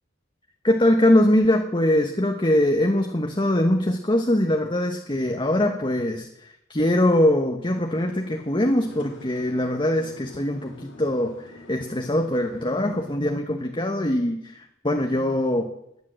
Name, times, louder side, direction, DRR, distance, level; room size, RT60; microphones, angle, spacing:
voice 1, 0.6-15.7, left 1 dB, 25° left, 4 dB, 1.1 m, -22 dB
sound 1, 7.7-13.2, left 1 dB, 80° left, 4.7 m, -46 dB
18.0 x 10.5 x 7.7 m, 0.82 s
head